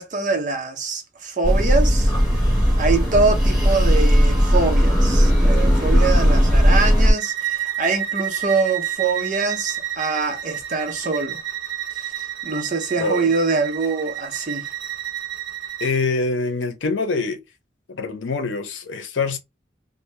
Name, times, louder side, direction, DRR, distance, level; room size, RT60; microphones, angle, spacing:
voice 1, 0.0-2.1 2.4-2.5 2.8-11.4 12.4-14.7, right 4 dB, 40° right, 0.7 m, -24 dB
sound 1, 1.4-7.1, equal, ahead, 1.2 m, -16 dB
Bowed string instrument, 7.2-16.0, right 11 dB, 80° right, 0.8 m, -30 dB
voice 2, 15.8-17.4 17.9-19.4, left 4 dB, 90° left, 0.6 m, -24 dB
2.6 x 2.1 x 3.2 m
head